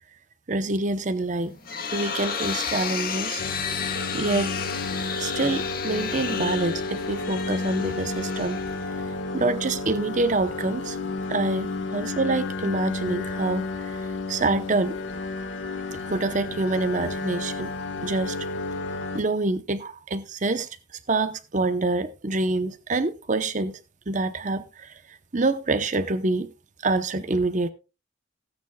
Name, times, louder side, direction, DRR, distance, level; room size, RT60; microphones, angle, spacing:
voice 1, 0.5-1.6 1.9-3.4 4.1-4.5 5.2-8.6 8.9-9.0 9.3-11.0 11.3-15.0 15.9-17.7 18.0-18.4 19.1-20.7 21.1-23.8 24.1-26.5 26.8-27.7, right 2 dB, 40° right, 0.7 m, -26 dB
sound 1, 1.3-9.2, left 6 dB, 50° left, 1.8 m, -32 dB
sound 2, 3.4-19.2, left 3 dB, 75° left, 1.3 m, -31 dB
18.0 x 9.0 x 2.3 m
head